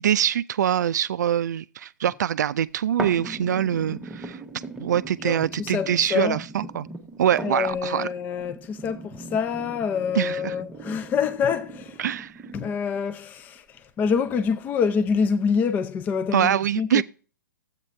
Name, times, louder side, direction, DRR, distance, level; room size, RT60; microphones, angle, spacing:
voice 1, 0.0-4.4 4.8-6.9 7.2-8.1 10.2-10.5 12.0-12.3 16.3-17.0, right 10 dB, 60° right, 0.4 m, -24 dB
sound 1, 3.0-13.0 13.5-13.6, right 2 dB, 10° right, 0.8 m, -39 dB
voice 2, 5.2-6.4 7.4-12.0 12.5-17.0, left 6 dB, 15° left, 0.4 m, -26 dB
11.5 x 8.1 x 3.2 m
hypercardioid pair, 125°, 10 cm